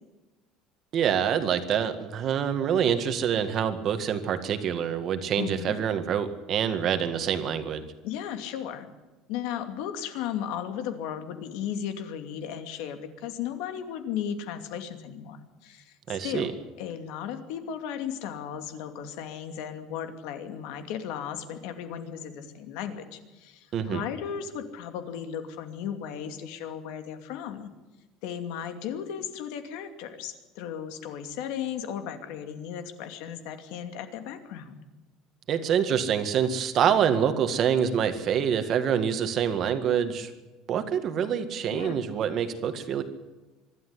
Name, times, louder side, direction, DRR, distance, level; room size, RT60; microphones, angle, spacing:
voice 1, 0.9-7.8 16.1-16.5 23.7-24.0 35.5-40.3 40.7-43.0, right 8 dB, 35° right, 9 dB, 1.8 m, -26 dB
voice 2, 5.4-5.7 8.0-8.9 9.3-27.7 28.2-34.8 41.7-42.0, left 9 dB, 65° left, 8 dB, 2.6 m, -35 dB
25.0 x 12.5 x 9.8 m, 1.1 s
cardioid pair, 180°, 0 cm